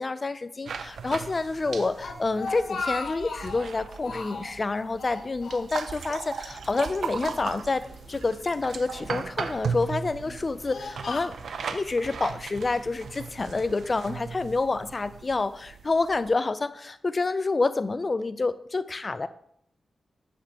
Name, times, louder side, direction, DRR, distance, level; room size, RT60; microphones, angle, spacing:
voice 1, 0.0-11.3 11.7-19.3, left 3 dB, 30° left, 14 dB, 0.3 m, -28 dB
sound 1, 0.7-16.3, right 5 dB, 75° right, 0.4 m, -38 dB
Speech, 1.8-3.7 4.0-4.6 5.0-6.1 6.3-6.5 7.3-8.3 9.0-9.5 10.1-11.8, left 3 dB, 75° left, 0.8 m, -37 dB
sound 2, 6.5-14.3, right 1 dB, 40° right, 3.1 m, -51 dB
7.9 x 6.1 x 2.9 m, 0.72 s
wide cardioid pair, 130°, 0 cm